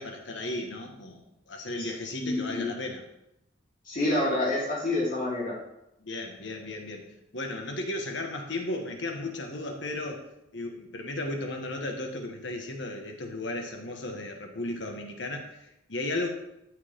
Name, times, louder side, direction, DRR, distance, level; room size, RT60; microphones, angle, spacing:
voice 1, 0.0-3.0 6.0-7.1 7.3-10.2 10.5-16.3, left 2 dB, 65° left, 3 dB, 1.6 m, -35 dB
voice 2, 2.2-2.7 3.8-5.5, left 1 dB, 45° left, -7 dB, 3.9 m, -28 dB
13.0 x 6.6 x 3.7 m, 0.87 s
head